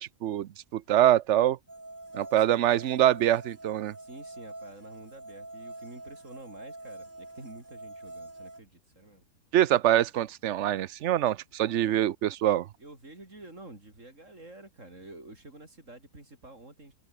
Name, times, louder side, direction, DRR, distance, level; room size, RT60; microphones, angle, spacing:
voice 1, 0.0-1.6 2.1-3.9 9.5-12.7, right 12 dB, 60° right, 0.7 m, -24 dB
sound 1, 1.7-8.6, right 2 dB, 25° right, 4.2 m, -45 dB
voice 2, 4.0-9.2 11.6-12.1 12.8-16.9, right 2 dB, 45° right, 5.4 m, -49 dB
omnidirectional pair, 1.8 m